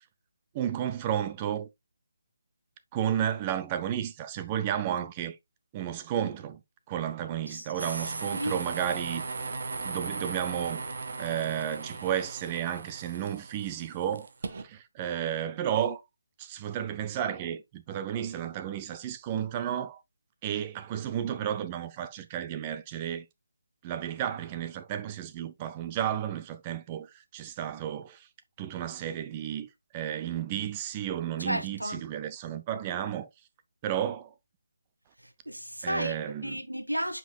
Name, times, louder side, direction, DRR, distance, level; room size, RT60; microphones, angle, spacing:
voice 1, 0.5-1.7 2.9-5.4 5.7-6.6 6.9-9.2 9.8-10.8 11.2-16.0 16.4-20.0 20.4-23.3 23.8-28.3 28.6-33.3 33.8-34.3 35.8-36.6, right 10 dB, 20° right, 0.6 m, -32 dB
sound 1, 7.8-14.6, right 4 dB, 50° right, 1.1 m, -37 dB
voice 2, 8.0-8.6 31.4-32.0 35.4-36.1 36.4-37.2, equal, 90° right, 1.6 m, -33 dB
8.9 x 5.4 x 2.3 m
figure-of-eight pair, 150°, 0 cm